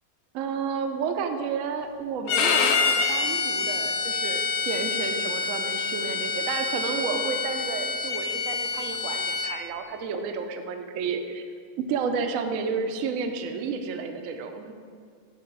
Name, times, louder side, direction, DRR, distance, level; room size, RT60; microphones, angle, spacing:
voice 1, 0.3-11.4 11.9-14.7, right 5 dB, 65° right, 6 dB, 0.9 m, -31 dB
Bowed string instrument, 2.3-9.5, left 4 dB, 70° left, 1.1 m, -27 dB
8.5 x 3.6 x 6.0 m, 2.2 s
omnidirectional pair, 1.7 m